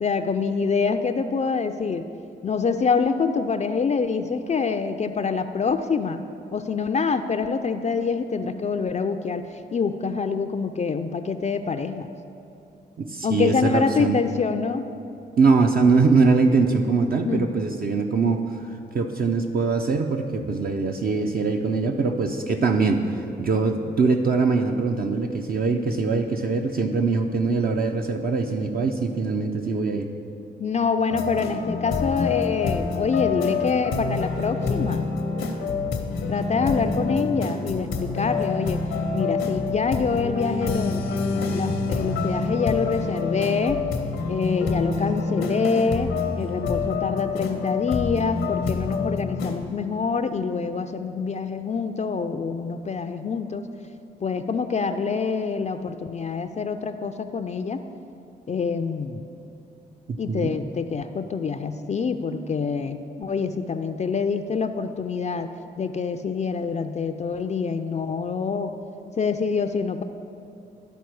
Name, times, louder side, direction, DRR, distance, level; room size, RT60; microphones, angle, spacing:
voice 1, 0.0-2.1 2.4-6.2 6.5-12.1 13.2-14.9 17.2-17.5 30.6-35.1 36.3-38.8 39.1-41.0 41.5-43.8 44.3-53.6 54.2-57.8 58.5-59.2 60.2-65.5 65.8-68.7 69.2-70.0, left 5 dB, 35° left, 7 dB, 0.4 m, -26 dB
voice 2, 13.0-14.2 15.4-18.4 18.9-30.1 60.1-60.5, right 4 dB, 50° right, 3 dB, 0.5 m, -22 dB
sound 1, 31.1-49.6, left 4 dB, 75° left, 0.8 m, -27 dB
12.0 x 4.2 x 4.7 m, 2.7 s
supercardioid pair, 45°, 20 cm